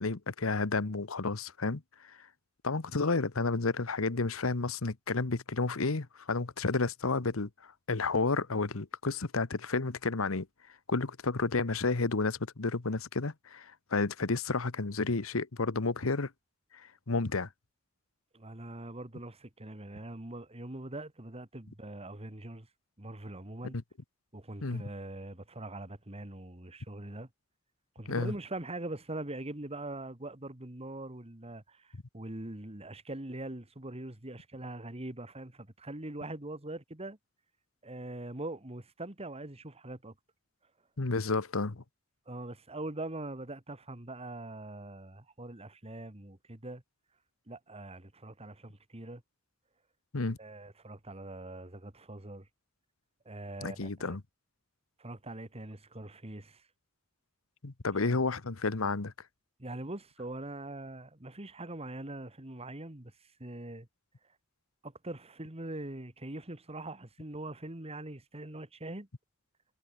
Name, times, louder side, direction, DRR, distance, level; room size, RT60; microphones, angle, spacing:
voice 1, 0.0-1.8 2.1-2.3 2.6-10.5 10.9-16.3 16.7-17.5 23.7-23.8 24.6-24.8 28.1-28.3 41.0-41.8 50.1-50.4 53.6-54.2 57.6-59.1, left 3 dB, 85° left, 1.1 m, -31 dB
voice 2, 18.3-22.7 23.0-23.8 24.3-27.3 28.0-37.2 37.8-40.1 42.3-46.8 47.5-49.2 50.4-52.5 53.3-54.2 55.0-56.6 58.0-58.2 59.6-63.1 63.4-63.9 64.8-69.1, right 2 dB, 30° right, 2.3 m, -42 dB
head